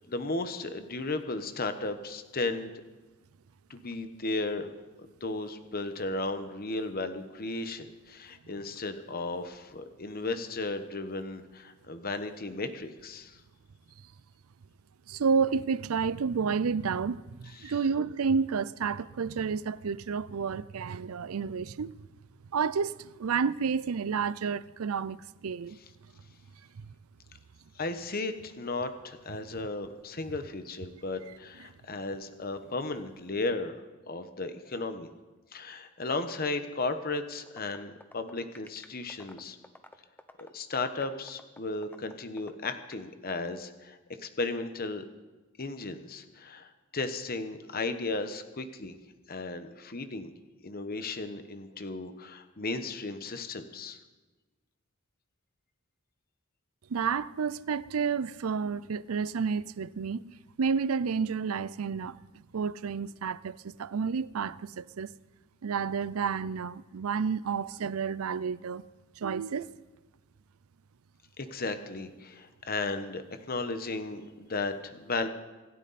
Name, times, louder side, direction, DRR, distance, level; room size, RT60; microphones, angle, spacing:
voice 1, 0.0-2.7 3.7-4.7 5.2-13.4 17.6-17.7 27.8-33.8 34.1-35.1 35.5-39.6 40.4-45.0 45.6-49.0 49.3-50.3 50.6-54.0 71.4-75.3, left 3 dB, 45° left, 1.1 m, -35 dB
voice 2, 15.1-22.0 22.5-25.8 26.8-26.9 56.9-62.2 62.5-65.1 65.6-68.8 69.2-69.7, right 5 dB, 85° right, 0.5 m, -30 dB
sound 1, 37.5-43.0, left 2 dB, 10° left, 0.8 m, -50 dB
26.0 x 11.5 x 4.2 m
head